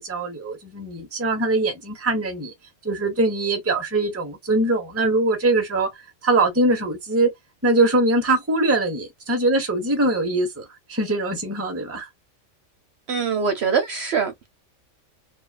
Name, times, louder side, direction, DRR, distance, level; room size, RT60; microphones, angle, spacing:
voice 1, 0.0-2.5 2.8-5.9 6.2-7.3 7.6-12.1, right 2 dB, 15° right, 0.6 m, -22 dB
voice 2, 13.1-14.5, right 6 dB, 60° right, 0.8 m, -23 dB
2.8 x 2.3 x 2.2 m
omnidirectional pair, 1.4 m